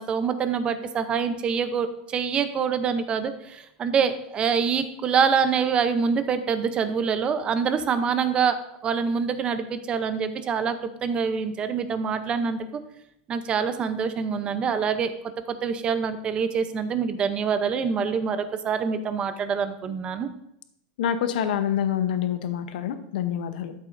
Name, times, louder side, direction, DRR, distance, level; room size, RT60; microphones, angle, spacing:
voice 1, 0.0-10.8 11.0-12.6 13.3-15.1 15.5-20.3, right 6 dB, 20° right, 10 dB, 0.7 m, -25 dB
voice 2, 21.0-23.7, left 9 dB, 75° left, 9 dB, 0.8 m, -26 dB
13.0 x 7.5 x 2.6 m, 0.77 s
supercardioid pair, 160°, 5 cm